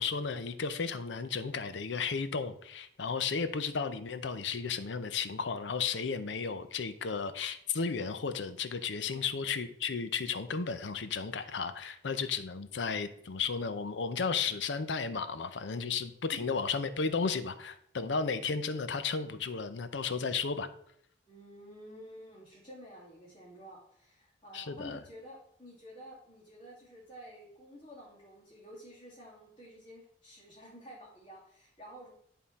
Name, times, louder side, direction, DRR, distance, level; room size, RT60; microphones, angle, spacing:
voice 1, 0.0-20.7 24.5-25.0, left 5 dB, 80° left, 11 dB, 0.6 m, -34 dB
voice 2, 21.3-32.1, equal, 25° left, -9 dB, 2.3 m, -51 dB
10.5 x 3.7 x 4.2 m, 0.68 s
head